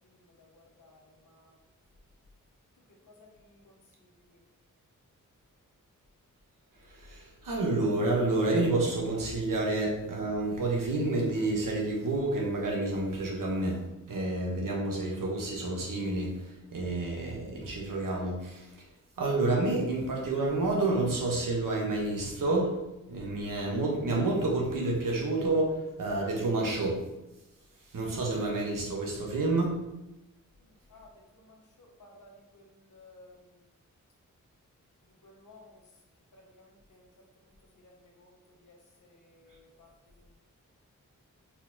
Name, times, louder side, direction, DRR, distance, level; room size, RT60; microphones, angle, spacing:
voice 1, 0.4-1.6 3.2-3.8 30.9-31.1 31.8-32.6 32.9-33.4 35.2-35.7 36.6-37.0 37.8-37.9 38.2-38.3 38.6-38.8 39.1-39.9, left 2 dB, 70° left, -1 dB, 1.1 m, -56 dB
voice 2, 6.9-16.3 16.7-18.6 19.2-22.7 23.1-27.0 27.9-29.8, right 2 dB, 80° right, -1 dB, 1.2 m, -29 dB
4.3 x 4.3 x 2.8 m, 0.97 s
wide cardioid pair, 95°, 32 cm